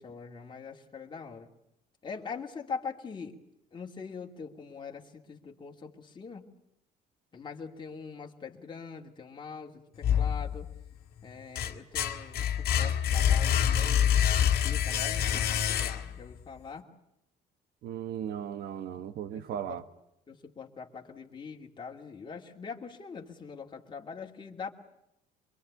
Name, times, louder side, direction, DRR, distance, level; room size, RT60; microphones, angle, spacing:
voice 1, 0.0-1.5 2.0-3.4 3.7-6.5 7.3-10.7 11.2-14.1 14.4-16.9 19.3-19.8 20.3-24.7, left 5 dB, 30° left, 1 dB, 2.9 m, -43 dB
sound 1, 10.0-10.9 11.3-16.3, left 9 dB, 65° left, 2.0 m, -26 dB
voice 2, 17.8-19.8, right 9 dB, 70° right, 11 dB, 1.6 m, -36 dB
24.5 x 23.0 x 8.5 m, 0.80 s
cardioid pair, 110°, 17 cm